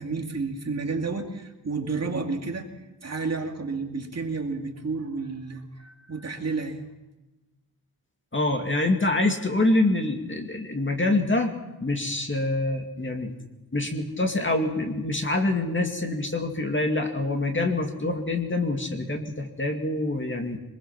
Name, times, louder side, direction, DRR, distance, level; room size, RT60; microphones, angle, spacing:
voice 1, 0.0-2.7 3.0-6.8, right 4 dB, 40° right, 3 dB, 2.4 m, -31 dB
voice 2, 8.3-11.5 11.8-13.3 13.7-20.6, left 2 dB, 30° left, 4 dB, 2.3 m, -25 dB
24.0 x 21.5 x 6.0 m, 1.1 s
wide cardioid pair, 140°, 38 cm